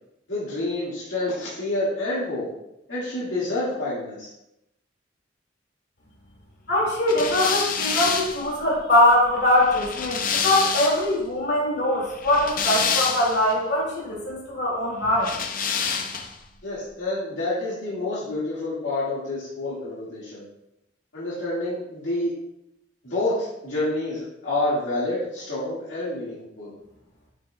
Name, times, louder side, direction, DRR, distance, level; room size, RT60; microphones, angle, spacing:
voice 1, 0.3-2.5 2.9-4.3 16.6-20.4 21.1-22.3 23.0-26.7, left 2 dB, 80° left, -9 dB, 2.0 m, -28 dB
voice 2, 6.7-15.3, left 1 dB, 60° left, -4 dB, 2.3 m, -22 dB
sound 1, 7.1-11.2 12.1-13.5 15.2-16.4, left 6 dB, 45° left, 0.6 m, -27 dB
7.2 x 6.3 x 2.3 m, 0.86 s
head